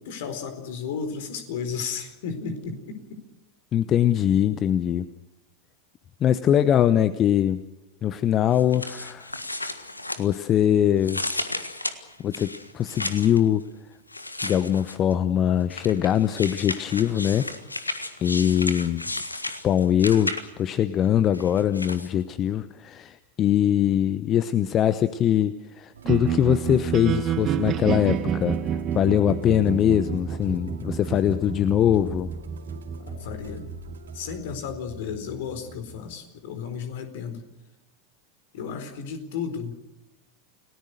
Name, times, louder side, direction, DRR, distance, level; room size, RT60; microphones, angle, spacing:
voice 1, 0.0-3.2 33.1-33.7 34.1-37.4 38.5-39.8, left 6 dB, 55° left, 8 dB, 4.2 m, -33 dB
voice 2, 3.7-5.0 6.2-7.6 8.0-9.3 10.2-11.2 12.2-13.7 14.4-17.5 18.2-19.1 19.6-28.6 28.9-32.3, left 10 dB, 30° left, 14 dB, 0.9 m, -22 dB
sound 1, 8.5-10.6 11.0-13.4 14.1-15.1 15.7-20.7 21.3-22.1, left 2 dB, 85° left, 1.7 m, -33 dB
Musical instrument, 25.9-34.4, right 4 dB, 70° right, 2.5 m, -46 dB
sound 2, 26.0-36.1, right 8 dB, 35° right, 1.2 m, -30 dB
29.5 x 18.5 x 6.6 m, 0.96 s
figure-of-eight pair, 85°, 0 cm